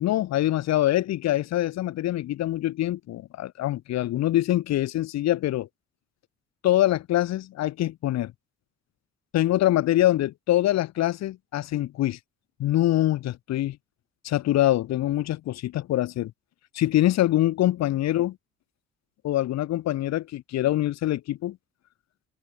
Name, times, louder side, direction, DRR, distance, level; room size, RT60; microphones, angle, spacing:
voice 1, 0.0-5.7 6.6-8.3 9.3-12.2 12.6-13.8 14.2-16.3 16.7-18.3 19.2-21.6, left 14 dB, 60° left, 0.6 m, -24 dB
cardioid pair, 90°, 30 cm